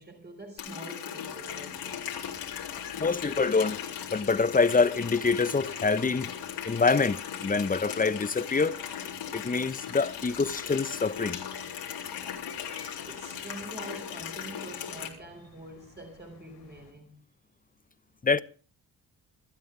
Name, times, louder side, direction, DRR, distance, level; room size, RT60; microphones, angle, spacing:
voice 1, 0.0-2.1 12.7-17.2, right 1 dB, 20° right, 4.9 m, -45 dB
Water tap faucet, 0.6-15.1, left 8 dB, 60° left, 3.6 m, -38 dB
sound 1, 1.3-16.9, left 7 dB, 85° left, 3.1 m, -53 dB
voice 2, 3.0-3.8 4.1-6.3 6.6-8.8 9.3-11.4 18.2-18.4, left 4 dB, 20° left, 1.0 m, -25 dB
24.0 x 13.0 x 3.4 m
hypercardioid pair, 45°, 46 cm